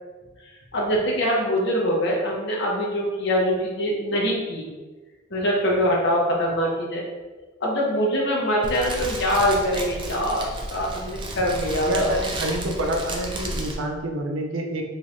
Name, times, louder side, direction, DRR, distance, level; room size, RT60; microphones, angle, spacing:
voice 1, 0.7-4.7 5.3-7.0 7.6-12.2, equal, 60° left, -2 dB, 0.8 m, -23 dB
Fire, 8.6-13.7, right 1 dB, 25° right, 0.4 m, -32 dB
voice 2, 11.8-14.8, right 1 dB, 85° right, 3 dB, 0.5 m, -27 dB
3.2 x 3.2 x 2.5 m, 1.3 s
head